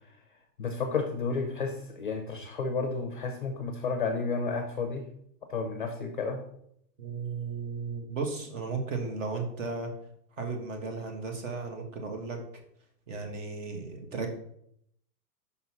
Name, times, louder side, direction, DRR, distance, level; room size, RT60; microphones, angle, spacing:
voice 1, 0.6-5.0 5.5-6.4, left 4 dB, 35° left, 5 dB, 0.5 m, -31 dB
voice 2, 7.0-9.9 10.4-12.4 13.1-14.3, right 4 dB, 50° right, 4 dB, 1.3 m, -35 dB
5.5 x 3.9 x 5.9 m, 0.70 s
supercardioid pair, 180°, 49 cm